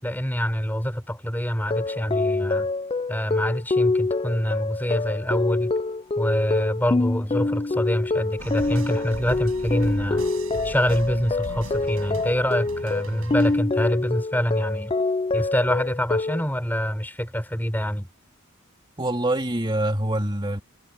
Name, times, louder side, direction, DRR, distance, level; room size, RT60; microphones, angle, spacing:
voice 1, 0.0-2.7 3.1-5.7 6.2-10.2 10.6-14.9 15.3-18.1, equal, 10° left, 5.3 m, -25 dB
sound 1, 1.6-16.4, left 3 dB, 25° left, 0.4 m, -26 dB
sound 2, 8.4-13.6, right 1 dB, 80° right, 5.4 m, -38 dB
voice 2, 19.0-20.6, right 1 dB, 20° right, 2.9 m, -25 dB
head